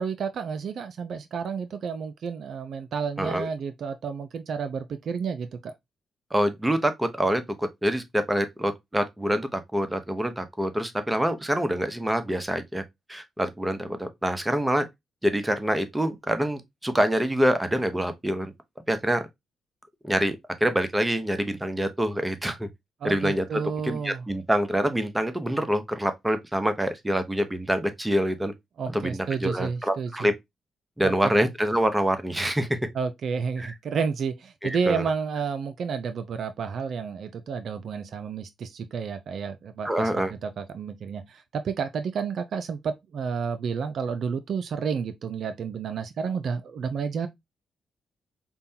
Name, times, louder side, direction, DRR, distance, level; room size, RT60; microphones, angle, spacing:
voice 1, 0.0-5.7 23.0-24.2 28.8-30.3 31.0-31.3 32.9-40.1 40.4-47.3, right 6 dB, 70° right, 0.4 m, -31 dB
voice 2, 3.2-3.5 6.3-12.8 13.1-14.9 15.2-18.5 18.9-19.2 20.0-20.4 20.6-22.7 23.0-28.5 28.9-30.3 31.0-32.8 33.6-33.7 34.6-35.0 39.8-40.3, equal, 15° right, 0.8 m, -26 dB
5.3 x 2.2 x 2.7 m
supercardioid pair, 50°, 0 cm